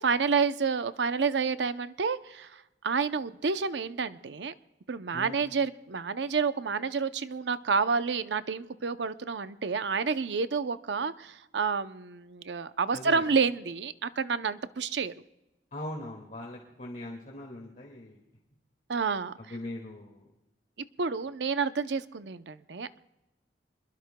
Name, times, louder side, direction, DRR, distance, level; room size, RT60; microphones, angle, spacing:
voice 1, 0.0-4.5 4.9-15.1 18.9-19.3 21.0-23.0, right 5 dB, 75° right, 12 dB, 0.6 m, -29 dB
voice 2, 5.1-5.4 12.9-13.3 15.7-18.2 19.4-20.3, left 1 dB, 45° left, -1 dB, 2.1 m, -41 dB
27.0 x 21.5 x 2.3 m, 0.98 s
head